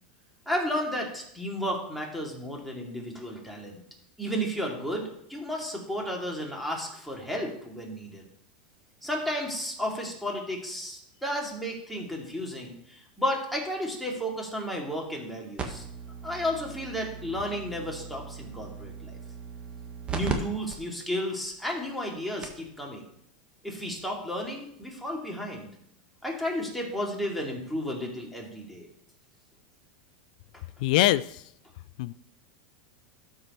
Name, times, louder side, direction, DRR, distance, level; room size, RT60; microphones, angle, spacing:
voice 1, 0.5-3.8 4.2-8.3 9.0-15.9 16.2-19.2 20.1-23.0 23.6-25.7 26.2-28.9 30.5-30.6, equal, ahead, -2 dB, 2.4 m, -33 dB
sound 1, 15.6-20.3 20.7-20.8 21.4-21.5 22.1-22.2 22.4-22.7 23.9-24.0, right 6 dB, 25° right, 1.4 m, -37 dB
voice 2, 30.8-31.4 32.0-32.1, left 16 dB, 65° left, 17 dB, 0.4 m, -23 dB
12.5 x 4.6 x 4.3 m, 0.74 s
hypercardioid pair, 115°, 5 cm